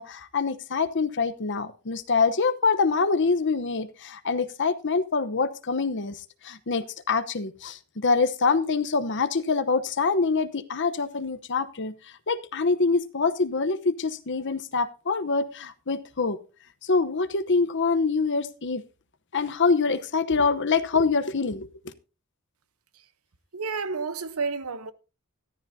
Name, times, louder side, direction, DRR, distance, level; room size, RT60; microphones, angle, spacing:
voice 1, 0.0-6.2 6.4-11.9 12.3-16.4 16.8-18.8 19.3-21.7, left 4 dB, 55° left, 0.9 m, -25 dB
voice 2, 23.5-24.9, right 4 dB, 75° right, 1.0 m, -30 dB
14.5 x 13.5 x 2.7 m
head